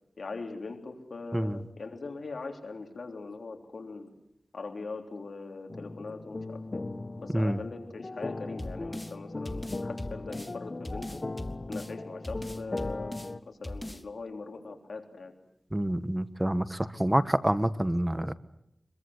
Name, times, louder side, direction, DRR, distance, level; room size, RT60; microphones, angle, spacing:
voice 1, 0.2-4.1 4.5-6.9 7.2-11.2 11.7-13.2 13.5-15.3, left 3 dB, 85° left, 4 dB, 3.6 m, -41 dB
sound 1, 5.7-13.4, left 2 dB, 45° left, 1.1 m, -38 dB
sound 2, 8.6-9.1 9.5-10.5 10.8-11.9 12.2-13.3 13.6-14.0, left 1 dB, 15° left, 1.7 m, -39 dB
voice 2, 15.7-18.3, right 1 dB, 15° right, 13 dB, 1.2 m, -27 dB
25.0 x 22.5 x 8.0 m, 0.79 s
wide cardioid pair, 65°, 0 cm